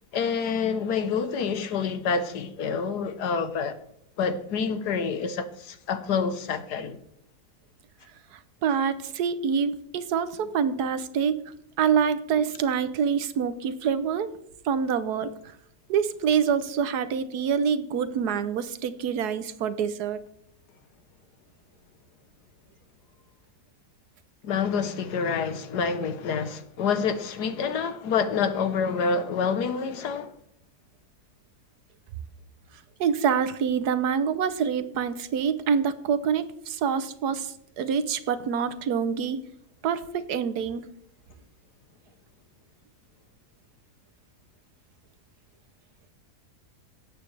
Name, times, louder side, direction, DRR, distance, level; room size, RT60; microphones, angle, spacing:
voice 1, 0.1-3.8 4.2-7.0 24.4-30.3, left 5 dB, 85° left, 1.5 m, -27 dB
voice 2, 8.3-11.4 11.8-14.3 14.6-15.3 15.9-20.2 33.0-39.4 39.8-40.8, right 7 dB, 75° right, 1.3 m, -26 dB
18.5 x 8.3 x 3.3 m
omnidirectional pair, 1.7 m